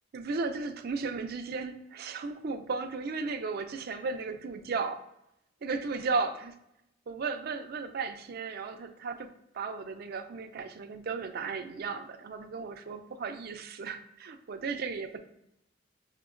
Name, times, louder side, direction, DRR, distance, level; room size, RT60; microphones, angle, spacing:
voice 1, 0.1-5.0 5.6-6.5 7.1-15.2, right 4 dB, 55° right, 7 dB, 0.4 m, -35 dB
5.8 x 2.2 x 2.5 m, 0.81 s
head